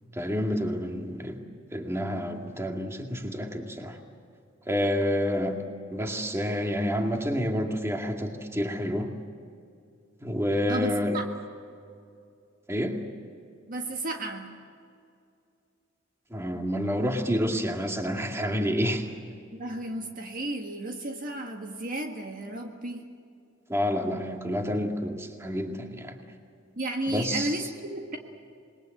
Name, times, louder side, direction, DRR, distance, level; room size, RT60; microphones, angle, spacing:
voice 1, 0.1-1.4 1.7-4.0 4.7-5.6 5.9-9.1 10.2-11.2 12.7-13.0 16.3-19.1 23.7-26.2 27.1-27.7, equal, 15° right, 3 dB, 2.2 m, -29 dB
voice 2, 10.7-11.2 13.7-14.6 19.5-23.0 26.7-28.2, right 1 dB, 45° right, 3 dB, 1.7 m, -33 dB
27.0 x 21.5 x 7.9 m, 2.4 s
head